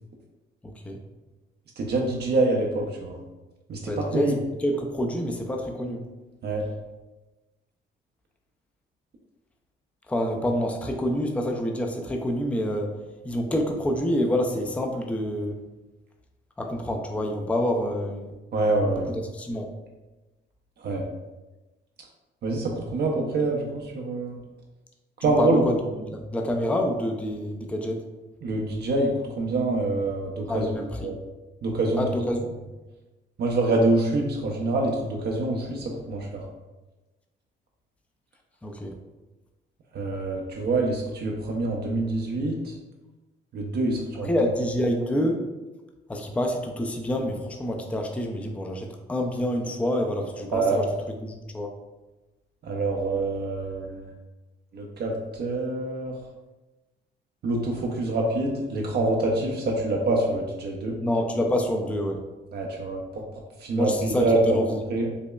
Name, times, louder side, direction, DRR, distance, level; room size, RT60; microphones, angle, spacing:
voice 1, 0.6-1.0 3.9-6.0 10.1-12.9 13.2-15.5 16.6-18.3 19.3-19.7 25.4-28.0 30.5-31.2 32.0-32.5 38.6-38.9 44.3-45.4 46.1-50.9 51.2-51.7 61.0-62.2 63.8-64.8, equal, 5° left, 3 dB, 0.4 m, -27 dB
voice 2, 1.8-3.2 3.7-4.3 6.4-6.6 18.5-19.1 20.8-21.0 22.4-24.4 25.2-25.6 28.4-29.1 29.4-30.7 31.0-31.1 31.6-32.0 33.4-36.4 39.9-42.8 43.5-44.3 50.5-50.8 52.6-54.1 54.7-56.1 57.4-61.0 62.5-63.2 63.6-64.6 64.9-65.1, right 2 dB, 55° right, 0 dB, 0.5 m, -26 dB
5.0 x 2.1 x 2.3 m, 1.1 s
cardioid pair, 90°, 20 cm